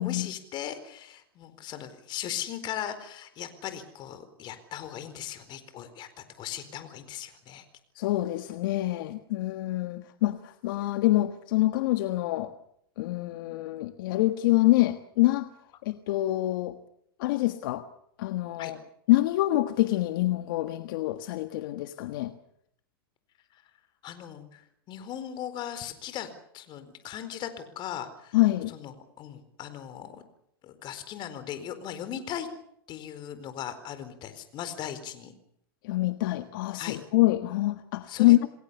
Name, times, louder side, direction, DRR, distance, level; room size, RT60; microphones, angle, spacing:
voice 1, 0.0-7.6 18.6-18.7 24.0-24.6 24.9-26.3 26.5-28.4 28.7-30.2 30.6-32.5 32.9-35.3 36.8-37.0 38.1-38.5, left 10 dB, 40° left, 11 dB, 4.3 m, -38 dB
voice 2, 7.9-12.5 13.0-15.5 15.8-16.8 17.2-17.9 18.2-18.8 19.1-22.3 28.3-28.7 35.8-38.5, left 17 dB, 65° left, 9 dB, 1.5 m, -26 dB
28.5 x 20.0 x 7.0 m, 0.72 s
hypercardioid pair, 120°, 12 cm